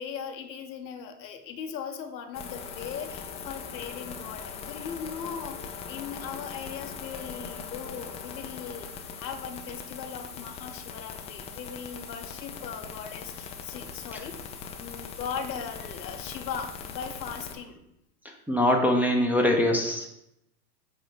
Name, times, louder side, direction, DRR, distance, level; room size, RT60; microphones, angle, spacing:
voice 1, 0.0-17.8, left 7 dB, 80° left, 5 dB, 1.2 m, -39 dB
sound 1, 2.3-17.5, left 6 dB, 15° left, 0.4 m, -40 dB
voice 2, 18.5-20.1, left 1 dB, 5° right, 2 dB, 0.9 m, -23 dB
7.8 x 3.0 x 6.2 m, 0.81 s
hypercardioid pair, 110°, 50 cm